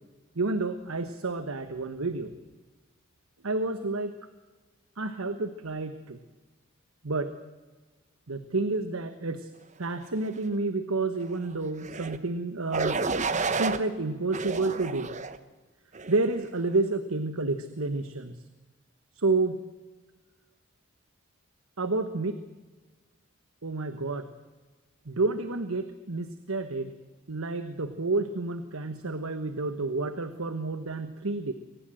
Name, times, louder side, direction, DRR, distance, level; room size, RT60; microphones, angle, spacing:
voice 1, 0.3-2.3 3.4-4.1 5.0-6.2 7.0-7.3 8.3-9.5 9.8-13.1 13.5-15.1 16.1-18.4 19.1-19.6 21.8-22.4 23.6-24.3 25.1-26.9 27.3-31.5, right 3 dB, 85° right, 10 dB, 1.2 m, -30 dB
sound 1, 11.8-12.2 12.7-13.8 14.3-15.4 16.0-16.3, right 4 dB, 35° right, 1.0 m, -30 dB
23.5 x 19.0 x 7.8 m, 1.3 s
head